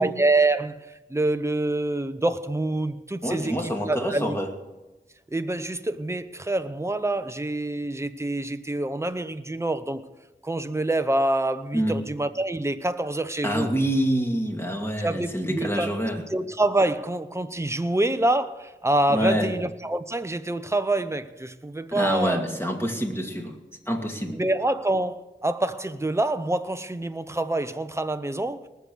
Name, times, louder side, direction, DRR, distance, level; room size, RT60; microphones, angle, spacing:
voice 1, 0.0-4.4 5.3-10.0 10.4-13.7 15.0-15.9 16.3-22.4 24.3-28.6, right 2 dB, 15° right, 0.7 m, -26 dB
voice 2, 3.2-4.5 11.7-12.0 13.4-16.2 19.1-19.5 21.9-23.6 23.9-24.4, equal, 10° left, 2.4 m, -26 dB
19.5 x 7.0 x 6.3 m
wide cardioid pair, 45°, 19 cm